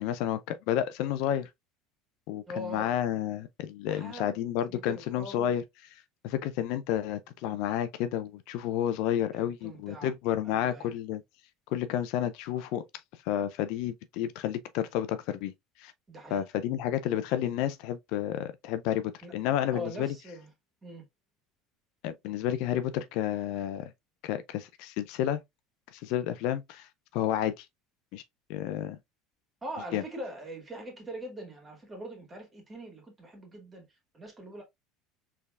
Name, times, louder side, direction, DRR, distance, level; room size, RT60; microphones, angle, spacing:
voice 1, 0.0-1.5 2.3-5.6 6.2-11.2 11.7-12.8 13.3-15.5 15.8-15.9 16.3-20.1 22.0-23.9 24.2-25.4 25.9-26.9 27.1-27.7 28.1-28.2 28.5-29.0 29.9-30.0, left 11 dB, 70° left, 0.4 m, -31 dB
voice 2, 2.5-3.2 3.8-4.3 4.6-5.5 9.4-10.1 10.4-10.9 16.1-16.4 19.2-19.3 19.7-20.5 20.8-21.1 29.6-34.6, equal, 25° right, 2.1 m, -42 dB
4.4 x 3.4 x 2.4 m
supercardioid pair, 100°, 0 cm